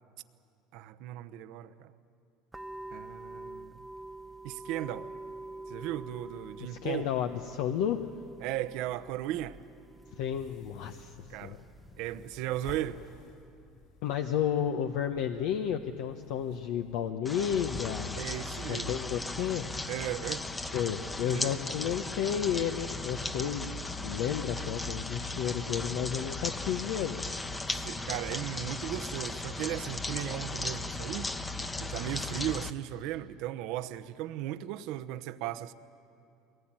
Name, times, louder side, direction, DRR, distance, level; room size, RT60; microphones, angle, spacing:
voice 1, 0.7-1.9 2.9-3.9 4.4-5.1 5.7-7.1 8.4-9.6 11.3-11.6 12.0-13.0 18.1-18.9 19.9-20.4 21.3-21.6 27.7-31.3 31.8-35.7, right 13 dB, 70° right, 0.9 m, -36 dB
sound 1, 2.5-13.1, right 2 dB, 10° right, 0.9 m, -47 dB
voice 2, 6.6-8.0 10.1-11.2 11.4-11.6 14.0-18.2 18.7-19.7 20.7-23.7 24.0-27.2, left 9 dB, 70° left, 1.0 m, -32 dB
sound 2, 10.1-17.1, left 5 dB, 50° left, 5.5 m, -53 dB
sound 3, 17.2-32.7, left 2 dB, 15° left, 1.1 m, -36 dB
22.5 x 18.5 x 9.0 m
supercardioid pair, 90°, 0 cm